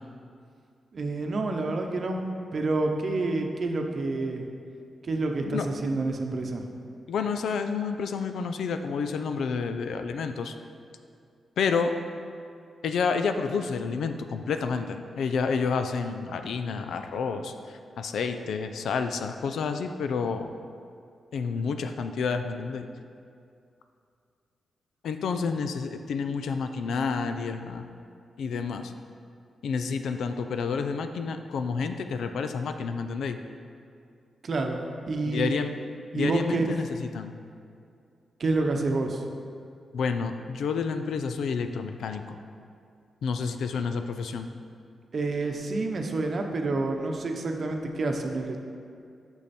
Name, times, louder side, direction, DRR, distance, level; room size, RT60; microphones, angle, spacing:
voice 1, 0.9-2.2 2.5-4.4 5.0-6.7 34.4-34.8 35.1-35.5 36.1-36.7 38.4-39.2 45.1-48.6, right 3 dB, 50° right, 3 dB, 0.8 m, -28 dB
voice 2, 7.1-10.5 11.6-11.9 12.8-20.5 21.3-22.9 25.0-27.9 28.4-28.9 29.6-33.4 35.3-35.7 36.1-37.3 39.9-42.4 43.2-44.5, left 5 dB, 85° left, 7 dB, 0.4 m, -29 dB
8.6 x 6.3 x 4.3 m, 2.4 s
cardioid pair, 100°, 0 cm